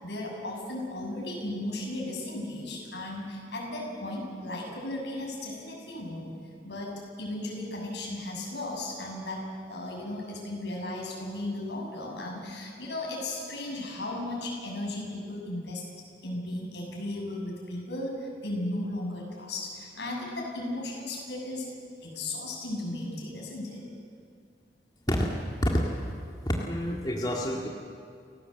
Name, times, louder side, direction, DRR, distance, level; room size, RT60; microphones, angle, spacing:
voice 1, 0.0-6.3 6.6-15.8 16.2-21.7 22.0-23.8, left 1 dB, 80° left, -1 dB, 7.4 m, -35 dB
voice 2, 25.6-26.1 26.4-27.7, equal, 25° left, -1 dB, 2.0 m, -28 dB
29.5 x 17.0 x 7.9 m, 2.3 s
head